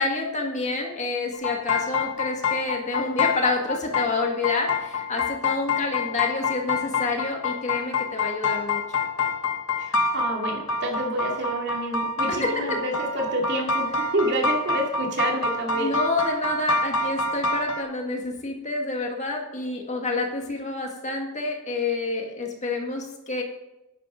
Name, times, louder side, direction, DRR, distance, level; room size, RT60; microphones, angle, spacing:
voice 1, 0.0-9.0 12.4-12.6 15.7-23.4, left 3 dB, 35° left, 1 dB, 1.8 m, -28 dB
sound 1, 1.3-17.8, left 3 dB, 70° left, 1.3 m, -27 dB
voice 2, 9.8-16.0, equal, 55° right, 0 dB, 2.4 m, -28 dB
11.5 x 9.5 x 3.8 m, 0.96 s
head